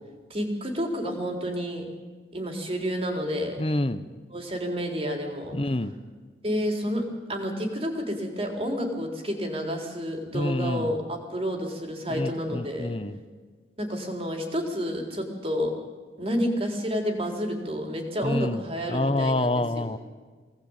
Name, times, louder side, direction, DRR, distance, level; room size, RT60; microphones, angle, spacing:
voice 1, 0.3-1.9 2.3-3.6 4.3-5.6 6.4-13.0 13.8-15.8 16.2-19.9, equal, 30° right, 2 dB, 4.1 m, -30 dB
voice 2, 3.6-4.1 5.5-5.9 10.3-10.9 12.2-13.2 18.2-18.6 18.9-20.0, left 1 dB, 30° left, 13 dB, 1.0 m, -27 dB
25.0 x 19.0 x 9.0 m, 1.4 s
head